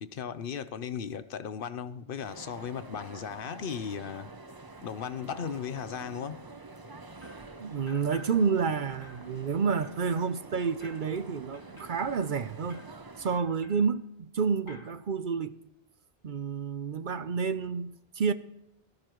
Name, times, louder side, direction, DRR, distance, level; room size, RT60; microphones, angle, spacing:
voice 1, 0.0-4.3 4.8-6.4, left 7 dB, 60° left, 0.8 m, -36 dB
sound 1, 2.2-13.4, right 3 dB, 25° right, 0.6 m, -47 dB
sound 2, 7.2-7.5 7.9-8.7 9.0-14.4 14.7-15.0, left 2 dB, 30° left, 1.7 m, -54 dB
voice 2, 7.6-12.8 13.2-14.0 14.3-15.6 16.2-18.3, right 5 dB, 55° right, 0.8 m, -29 dB
18.5 x 14.0 x 3.1 m
omnidirectional pair, 1.0 m